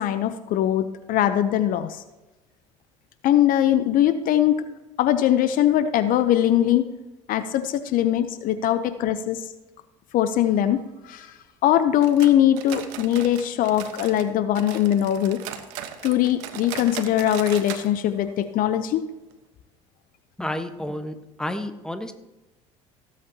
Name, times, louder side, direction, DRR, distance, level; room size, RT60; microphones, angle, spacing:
voice 1, 0.0-2.0 3.2-4.6 5.0-6.9 7.3-9.4 10.1-10.8 11.1-11.3 11.6-15.4 16.0-19.1, left 11 dB, 60° left, 12 dB, 0.7 m, -21 dB
sound 1, 12.0-14.3 14.5-17.9 18.1-18.2 18.6-18.7 19.3-19.4, right 10 dB, 75° right, 1.2 m, -37 dB
voice 2, 20.4-22.1, left 1 dB, 5° left, 8 dB, 1.3 m, -31 dB
17.0 x 8.4 x 2.9 m, 1.1 s
hypercardioid pair, 75°, 16 cm